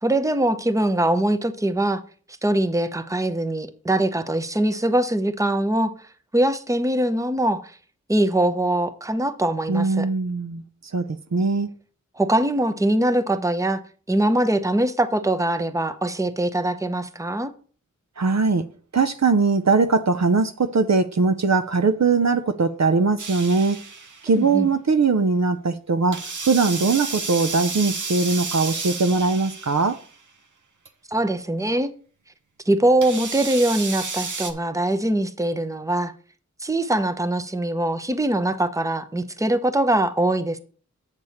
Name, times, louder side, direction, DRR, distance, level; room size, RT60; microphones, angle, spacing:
voice 1, 0.0-2.0 2.4-5.9 6.3-7.7 8.1-10.1 12.2-13.8 14.1-17.5 24.4-24.7 31.1-31.9 32.7-36.1 36.6-40.6, right 1 dB, 10° right, 0.7 m, -22 dB
voice 2, 9.7-10.6 10.9-11.7 18.2-18.6 18.9-23.8 24.2-30.0, right 4 dB, 60° right, 0.6 m, -21 dB
sound 1, 23.2-24.3 26.1-30.1 30.9-31.0 33.0-34.5, right 4 dB, 75° right, 1.0 m, -31 dB
8.1 x 6.8 x 4.3 m
wide cardioid pair, 55°, 31 cm